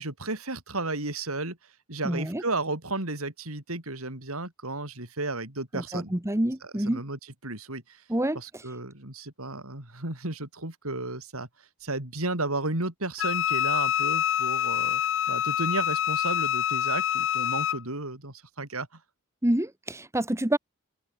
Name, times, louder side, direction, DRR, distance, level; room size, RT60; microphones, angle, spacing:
voice 1, 0.0-1.6 1.9-6.1 6.6-8.0 8.3-11.5 11.8-15.0 15.3-19.0, right 2 dB, 85° right, 5.4 m, -33 dB
voice 2, 2.0-2.4 5.7-7.0 8.1-8.4 19.4-20.6, right 1 dB, 15° right, 1.5 m, -27 dB
Wind instrument woodwind instrument, 13.2-17.8, left 10 dB, 65° left, 0.6 m, -26 dB
head